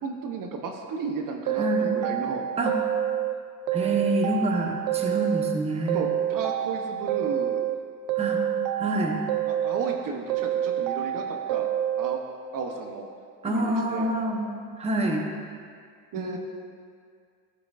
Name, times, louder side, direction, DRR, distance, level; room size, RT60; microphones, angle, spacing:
voice 1, 0.0-2.5 5.9-7.6 9.5-11.7 12.0-12.2 12.5-13.1 13.4-14.1 16.1-16.4, right 4 dB, 55° right, 2 dB, 0.9 m, -34 dB
voice 2, 1.5-1.9 2.6-2.7 3.7-6.0 8.2-8.4 8.8-9.2 13.4-14.4 14.8-15.3 16.2-16.4, right 1 dB, 15° right, 0 dB, 0.9 m, -27 dB
sound 1, 1.5-3.3 3.7-5.6 5.9-7.8 8.1-10.0 10.3-12.2, right 11 dB, 75° right, 0.6 m, -27 dB
13.0 x 5.8 x 2.5 m, 2.2 s
cardioid pair, 100°, 38 cm